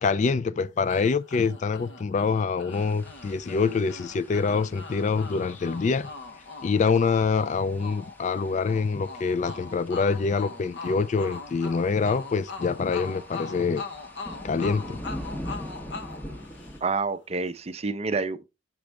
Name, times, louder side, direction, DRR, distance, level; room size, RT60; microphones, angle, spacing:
voice 1, 0.0-6.1 6.6-13.8 14.4-15.0, left 5 dB, 40° left, 0.3 m, -25 dB
sound 1, 0.9-17.1, left 4 dB, 65° left, 1.0 m, -41 dB
sound 2, 2.7-16.8, equal, 10° left, 0.8 m, -44 dB
voice 2, 16.8-18.4, right 4 dB, 35° right, 0.5 m, -28 dB
6.4 x 6.1 x 3.3 m
head